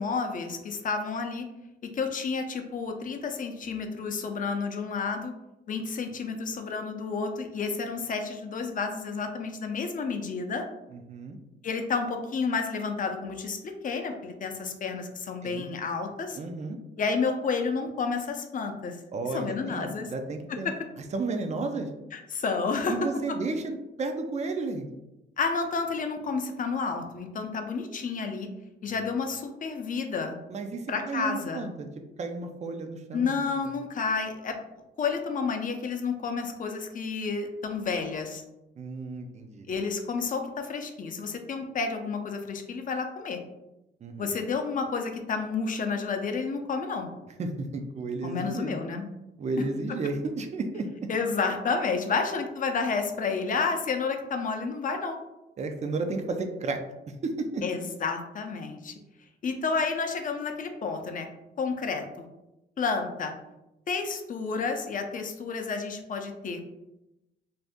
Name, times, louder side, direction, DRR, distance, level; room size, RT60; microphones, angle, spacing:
voice 1, 0.0-1.5 1.8-5.3 5.7-10.6 11.6-16.4 17.0-19.0 19.3-20.1 20.5-20.7 22.1-22.9 23.3-23.4 25.4-28.5 28.8-30.4 30.9-31.6 33.1-34.6 35.0-38.4 39.7-43.4 44.2-47.1 48.2-49.1 49.9-50.0 51.1-55.2 57.6-58.9 59.4-61.3 61.6-62.2 62.8-63.3 63.9-66.6, left 4 dB, 45° left, 5 dB, 0.5 m, -30 dB
voice 2, 10.9-11.4 15.4-15.7 16.4-16.8 19.1-20.7 21.1-21.9 22.9-24.9 28.9-29.0 30.5-31.9 32.2-33.4 33.6-33.7 38.8-39.7 44.0-44.3 47.4-48.8 49.4-50.9 55.6-56.8 57.2-57.6, right 3 dB, 35° right, 5 dB, 0.5 m, -33 dB
2.6 x 2.4 x 3.5 m, 0.93 s
cardioid pair, 90°, 20 cm